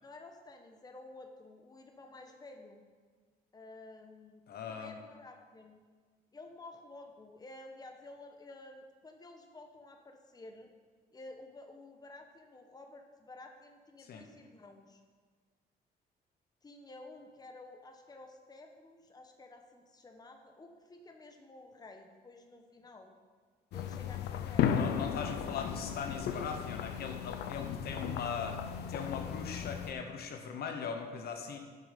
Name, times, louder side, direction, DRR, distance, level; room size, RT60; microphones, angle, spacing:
voice 1, 0.0-2.8 3.5-4.4 4.7-5.8 6.3-10.7 11.1-15.0 16.6-23.1 23.7-24.8, left 2 dB, 25° left, 4 dB, 1.1 m, -52 dB
voice 2, 4.5-4.9 14.1-14.3 24.7-28.6 28.9-31.6, left 6 dB, 70° left, 5 dB, 1.1 m, -40 dB
sound 1, 23.7-29.9, left 8 dB, 90° left, 0.7 m, -35 dB
10.5 x 6.8 x 5.2 m, 1.5 s
cardioid pair, 110°, 17 cm